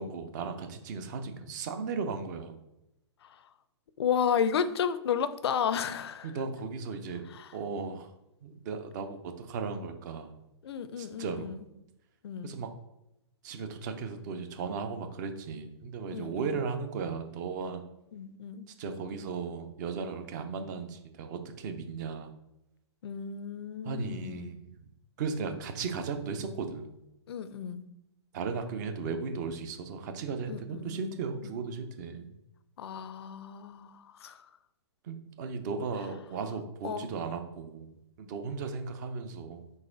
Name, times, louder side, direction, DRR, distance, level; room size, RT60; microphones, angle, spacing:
voice 1, 0.0-2.6 6.2-7.2 7.5-8.1 8.4-10.4 11.0-11.6 12.4-12.7 13.4-17.8 18.8-22.3 23.8-24.7 25.2-26.9 28.3-32.3 35.0-39.8, right 5 dB, 40° right, 7 dB, 0.6 m, -36 dB
voice 2, 4.0-6.3 7.3-7.5 10.6-11.7 12.2-12.6 16.1-16.5 18.1-18.7 23.0-24.5 27.3-27.9 30.5-31.1 31.4-31.6 32.8-34.5 36.8-37.1, left 7 dB, 60° left, 12 dB, 0.4 m, -33 dB
4.1 x 2.5 x 3.8 m, 0.86 s
figure-of-eight pair, 125°, 15 cm